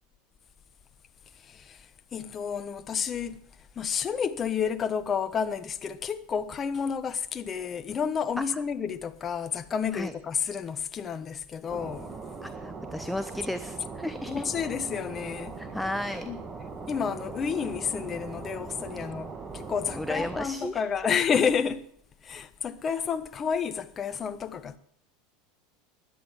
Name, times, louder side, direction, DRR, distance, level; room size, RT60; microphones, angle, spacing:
voice 1, 1.4-3.4 3.8-12.1 14.3-15.6 16.3-16.4 16.9-21.9 22.2-24.8, left 7 dB, 30° left, 0.9 m, -30 dB
sound 1, 11.7-20.5, right 4 dB, 25° right, 2.0 m, -40 dB
voice 2, 12.4-14.5 15.6-16.3 19.9-21.1, left 1 dB, 5° left, 0.7 m, -34 dB
13.5 x 10.5 x 7.2 m
figure-of-eight pair, 80°, 0 cm